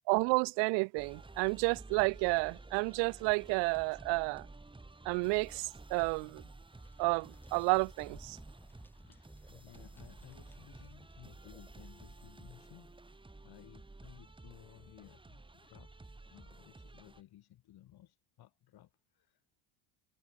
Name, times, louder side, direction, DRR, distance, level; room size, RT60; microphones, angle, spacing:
voice 1, 0.1-4.5 5.1-6.4 7.0-8.4, right 33 dB, 70° right, 0.5 m, -31 dB
sound 1, 1.0-17.2, right 2 dB, 10° right, 3.3 m, -53 dB
sound 2, 6.7-11.2, left 1 dB, 5° left, 7.2 m, -60 dB
voice 2, 9.0-15.9 16.3-19.6, left 13 dB, 55° left, 7.4 m, -58 dB
supercardioid pair, 100°, 45 cm